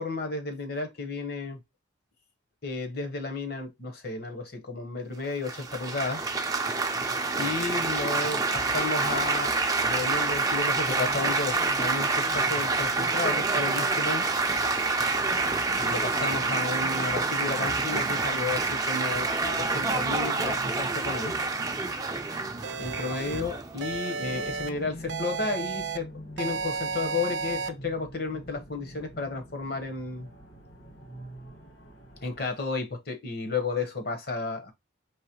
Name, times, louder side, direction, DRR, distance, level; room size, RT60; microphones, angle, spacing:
voice 1, 0.0-1.6 2.6-6.2 7.4-9.5 9.8-14.2 15.8-21.3 22.8-26.1 26.4-30.3 32.2-34.7, left 3 dB, 50° left, 1.0 m, -32 dB
Laughter / Applause / Chatter, 5.5-24.6, right 3 dB, 20° right, 0.5 m, -27 dB
sound 1, 22.6-23.4 23.8-24.7 25.1-26.0 26.4-27.7, right 5 dB, 70° right, 0.6 m, -33 dB
sound 2, 24.2-32.5, equal, 75° left, 2.0 m, -45 dB
4.9 x 3.2 x 2.9 m
head